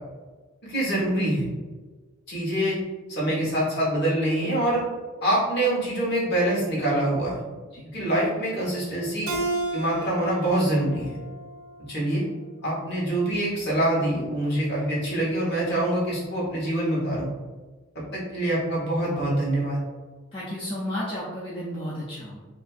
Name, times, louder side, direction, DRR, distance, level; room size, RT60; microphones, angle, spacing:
voice 1, 0.6-1.4 2.3-2.8 3.1-4.8 5.2-7.4 7.9-9.3 9.7-11.2 11.9-12.2 12.6-17.3 18.1-19.8, right 1 dB, 50° left, -6 dB, 1.1 m, -25 dB
Keyboard (musical), 9.3-12.5, right 2 dB, 70° right, 0.4 m, -33 dB
voice 2, 20.3-22.4, left 1 dB, 25° left, -7 dB, 0.4 m, -33 dB
2.5 x 2.5 x 2.3 m, 1.3 s
head